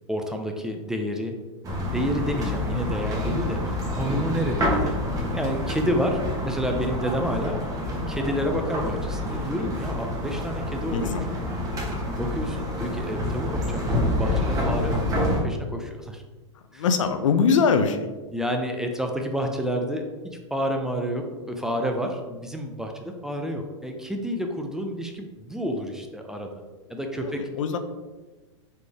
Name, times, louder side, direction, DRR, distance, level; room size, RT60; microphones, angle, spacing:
voice 1, 0.1-1.3 1.9-5.0 5.3-7.6 8.1-11.0 12.1-16.2 16.7-16.8 18.3-26.6 26.9-27.4, equal, 5° right, 3 dB, 0.4 m, -29 dB
sound 1, 1.6-15.4, left 1 dB, 20° right, 1.0 m, -28 dB
voice 2, 10.9-11.3 16.7-18.1 27.1-27.8, left 5 dB, 85° left, 9 dB, 0.5 m, -23 dB
4.2 x 3.1 x 3.4 m, 1.3 s
hypercardioid pair, 120°, 16 cm